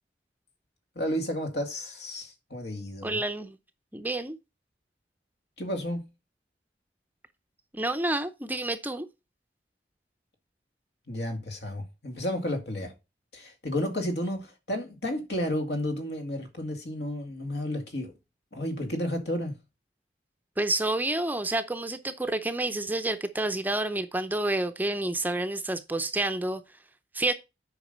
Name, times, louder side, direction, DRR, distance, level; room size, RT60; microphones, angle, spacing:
voice 1, 1.0-3.2 5.6-6.1 11.1-12.9 13.3-18.1 18.5-19.6, left 1 dB, 65° left, 2.2 m, -32 dB
voice 2, 3.0-3.6 3.9-4.4 7.7-9.1 20.6-26.6 27.1-27.3, right 2 dB, 10° right, 0.6 m, -29 dB
8.0 x 5.2 x 5.3 m
head